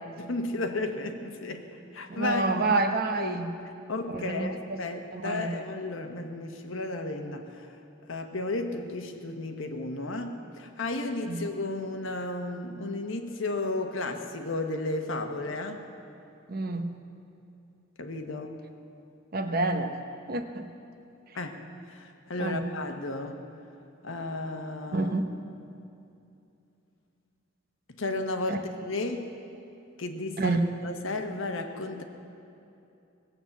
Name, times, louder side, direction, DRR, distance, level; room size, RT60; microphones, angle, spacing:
voice 1, 0.2-1.6 1.9-2.8 3.2-7.7 8.1-15.9 18.0-18.6 21.3-21.6 21.9-23.4 24.0-25.4 28.0-29.3 30.0-32.0, left 2 dB, 70° left, 5 dB, 1.1 m, -33 dB
voice 2, 2.1-3.5 4.1-4.8 5.1-5.6 11.3-11.4 16.5-16.9 19.3-19.9 20.3-20.6 22.4-22.6 24.9-25.3 28.5-28.6 30.4-30.6, right 2 dB, 45° right, 7 dB, 0.8 m, -28 dB
19.0 x 8.2 x 7.2 m, 2.7 s
head